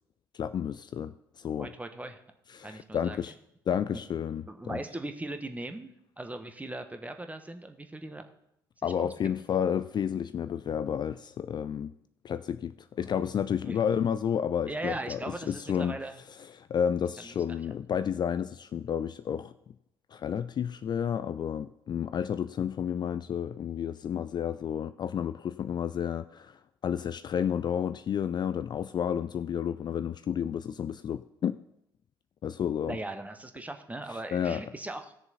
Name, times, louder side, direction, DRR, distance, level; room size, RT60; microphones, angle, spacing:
voice 1, 0.3-1.7 2.5-3.3 3.7-4.8 8.8-11.9 12.2-15.2 15.5-16.0 16.6-19.5 20.1-31.6 32.4-33.0 34.3-34.6, left 8 dB, 35° left, 0.4 m, -31 dB
voice 2, 1.6-2.2 2.6-3.2 3.9-4.0 4.5-8.2 8.8-9.1 13.0-13.1 13.6-13.8 14.7-16.2 17.2-17.7 32.8-35.1, right 2 dB, 10° right, 1.3 m, -39 dB
16.5 x 6.7 x 4.2 m
figure-of-eight pair, 50°, 12 cm